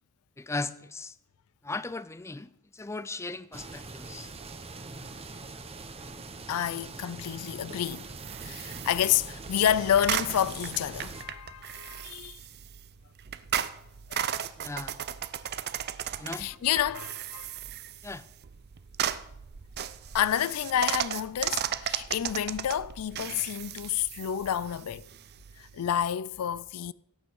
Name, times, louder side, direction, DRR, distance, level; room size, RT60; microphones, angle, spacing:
voice 1, 0.4-1.1 1.6-4.3 14.6-15.0 16.2-16.5 18.0-18.2, left 3 dB, 15° left, 0.4 m, -37 dB
sound 1, 3.5-11.3, right 3 dB, 30° right, 1.0 m, -43 dB
voice 2, 6.5-8.1 8.4-12.4 14.1-14.4 16.4-17.5 20.1-25.1 25.6-26.9, left 10 dB, 80° left, 0.4 m, -29 dB
sound 2, 7.9-26.1, right 9 dB, 50° right, 0.5 m, -36 dB
17.0 x 8.8 x 4.7 m
head